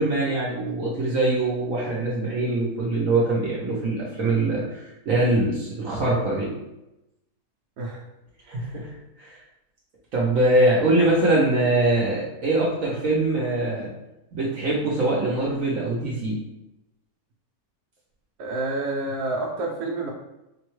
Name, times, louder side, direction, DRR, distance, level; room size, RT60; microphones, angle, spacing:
voice 1, 0.0-6.5 8.5-8.9 9.2-9.4 10.1-13.9 14.3-16.4, right 2 dB, 65° right, -5 dB, 1.2 m, -23 dB
voice 2, 18.4-20.1, right 2 dB, 85° right, -2 dB, 1.2 m, -28 dB
5.3 x 2.2 x 3.0 m, 0.94 s
omnidirectional pair, 1.6 m